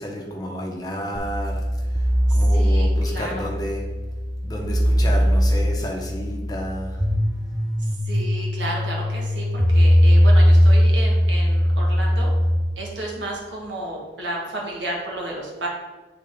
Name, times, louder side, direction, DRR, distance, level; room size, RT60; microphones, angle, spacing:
voice 1, 0.0-1.6 2.3-3.8 4.4-6.9, equal, 20° left, 0 dB, 1.0 m, -31 dB
sound 1, 1.2-12.6, equal, 10° right, 0.6 m, -19 dB
voice 2, 2.3-3.5 8.0-12.3 12.8-15.7, right 1 dB, 75° right, -2 dB, 1.5 m, -32 dB
8.6 x 3.9 x 3.7 m, 1.2 s
head